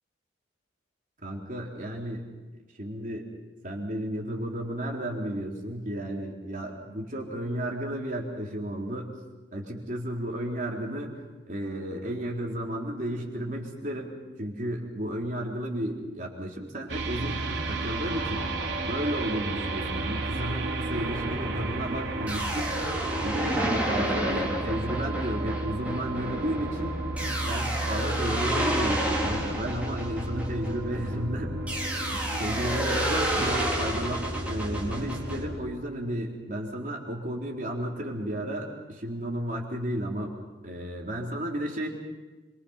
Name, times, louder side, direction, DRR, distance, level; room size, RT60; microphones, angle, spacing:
voice 1, 1.2-2.2 2.7-3.2 3.6-9.1 9.5-11.1 11.5-18.5 18.8-27.0 27.5-31.6 31.9-41.9, right 1 dB, 45° right, -1 dB, 4.0 m, -33 dB
sound 1, 16.9-35.6, right 2 dB, 80° right, 3.3 m, -33 dB
sound 2, 20.9-31.1 31.7-35.4, right 1 dB, 10° right, 4.1 m, -31 dB
27.5 x 23.5 x 5.8 m, 1.2 s
head